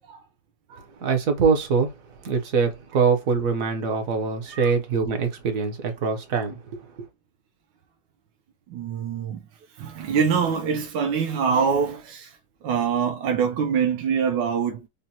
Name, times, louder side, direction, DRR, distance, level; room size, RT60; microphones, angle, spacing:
voice 1, 1.0-1.9 2.2-6.8, right 5 dB, 60° right, 1.1 m, -23 dB
voice 2, 8.7-9.4 9.8-12.4 12.6-14.9, right 6 dB, 80° right, 1.3 m, -24 dB
5.2 x 2.1 x 2.8 m
omnidirectional pair, 1.9 m